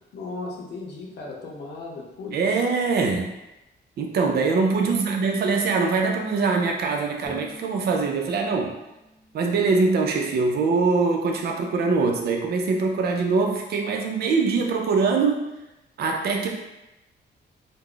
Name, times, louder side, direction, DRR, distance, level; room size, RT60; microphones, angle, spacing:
voice 1, 0.1-2.4 4.7-5.2, left 3 dB, 65° left, -1 dB, 0.7 m, -37 dB
voice 2, 2.3-3.3 4.0-8.7 9.3-15.4 16.0-16.5, right 4 dB, 60° right, 2 dB, 0.4 m, -23 dB
Bowed string instrument, 7.3-10.5, equal, ahead, 0.5 m, -47 dB
2.3 x 2.0 x 3.6 m, 0.95 s
cardioid pair, 130°, 19 cm